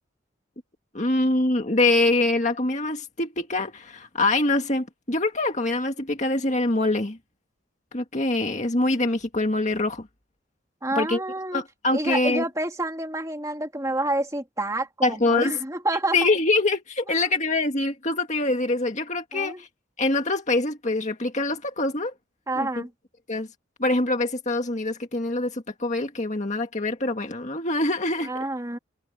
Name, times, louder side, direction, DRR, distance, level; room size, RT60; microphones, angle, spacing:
voice 1, 0.9-7.2 7.9-10.1 11.0-11.2 11.5-12.4 15.0-15.6 16.1-19.7 20.0-22.1 22.6-22.7 23.3-23.5 23.8-28.3, left 2 dB, 35° left, 1.9 m, -24 dB
voice 2, 10.8-11.6 11.9-16.2 19.3-19.6 22.5-22.9 28.2-28.8, right 2 dB, 15° right, 2.4 m, -28 dB
head